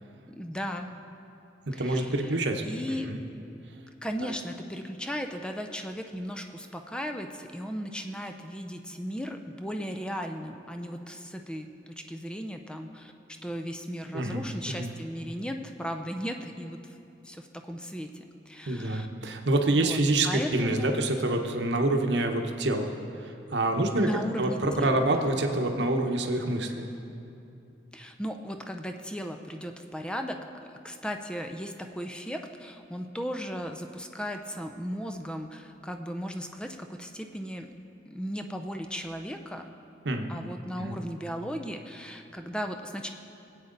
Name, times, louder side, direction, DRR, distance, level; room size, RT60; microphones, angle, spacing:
voice 1, 0.3-0.9 1.7-2.3 2.6-3.1 4.0-13.1 13.4-17.0 17.2-19.1 19.7-20.0 20.3-20.9 24.0-25.3 27.9-37.7 38.1-39.6 40.3-43.1, equal, 5° left, 5 dB, 0.5 m, -36 dB
voice 2, 1.7-2.6 3.1-3.2 4.2-4.3 14.1-14.9 18.7-24.1 24.4-26.9 40.0-40.3 40.8-41.0, right 2 dB, 75° right, 4 dB, 1.0 m, -27 dB
19.5 x 8.4 x 3.9 m, 2.7 s
head